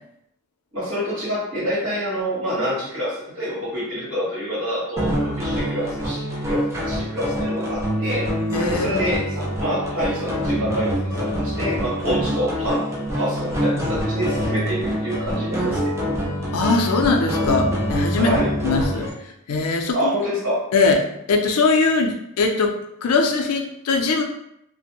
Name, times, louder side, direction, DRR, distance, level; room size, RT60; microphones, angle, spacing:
voice 1, 0.7-8.2 8.7-12.9 13.2-15.8 18.2-18.5 19.9-20.6, equal, 60° right, -7 dB, 1.3 m, -27 dB
sound 1, 5.0-19.1, equal, 10° right, 0.4 m, -25 dB
voice 2, 8.5-9.2 16.5-18.3 18.6-20.1 20.7-24.2, left 4 dB, 90° left, 3 dB, 0.4 m, -21 dB
2.5 x 2.1 x 2.8 m, 0.78 s
head